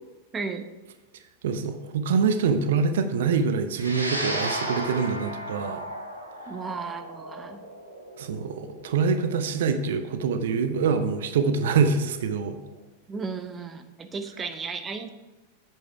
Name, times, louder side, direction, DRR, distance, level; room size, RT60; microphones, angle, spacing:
voice 1, 0.3-0.7 6.5-7.6 13.1-15.1, right 4 dB, 20° right, 8 dB, 0.7 m, -34 dB
voice 2, 1.4-5.8 8.2-12.6, right 5 dB, 60° right, 9 dB, 0.8 m, -25 dB
sound 1, 3.7-12.3, right 1 dB, 80° right, 1.5 m, -35 dB
8.3 x 7.6 x 4.6 m, 1.2 s
figure-of-eight pair, 90°, 0 cm